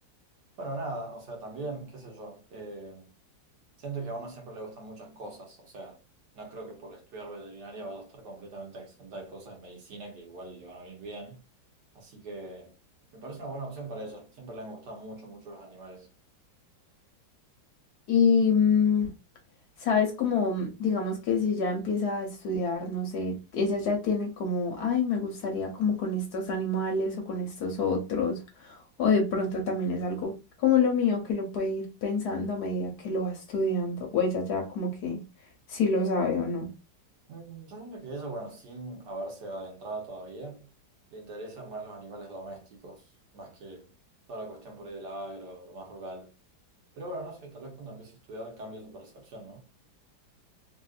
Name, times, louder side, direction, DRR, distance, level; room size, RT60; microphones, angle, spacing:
voice 1, 0.6-3.1 3.8-6.0 6.3-11.4 11.9-12.7 13.1-16.1 37.3-40.7 41.1-43.0 43.3-43.9 44.3-46.3 46.9-49.6, right 2 dB, 65° right, 1.5 m, -41 dB
voice 2, 18.1-19.1 19.8-30.3 30.6-35.2 35.7-36.7, left 4 dB, 60° left, 1.2 m, -27 dB
3.4 x 2.5 x 2.4 m
omnidirectional pair, 2.1 m